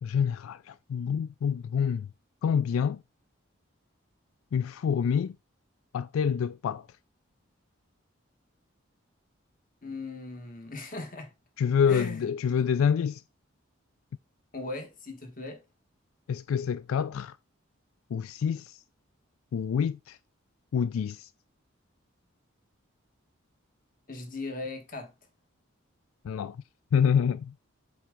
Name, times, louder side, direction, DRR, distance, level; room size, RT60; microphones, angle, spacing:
voice 1, 0.0-2.1 2.4-3.0 4.5-5.4 5.9-6.9 11.6-13.2 16.3-17.4 18.1-18.8 19.5-20.2 20.7-21.3 26.2-26.6 26.9-27.5, left 7 dB, 90° left, 0.3 m, -27 dB
voice 2, 9.8-11.3 11.9-12.2 14.5-15.6 24.1-25.1, left 2 dB, 40° left, 1.5 m, -38 dB
7.6 x 3.3 x 5.2 m
head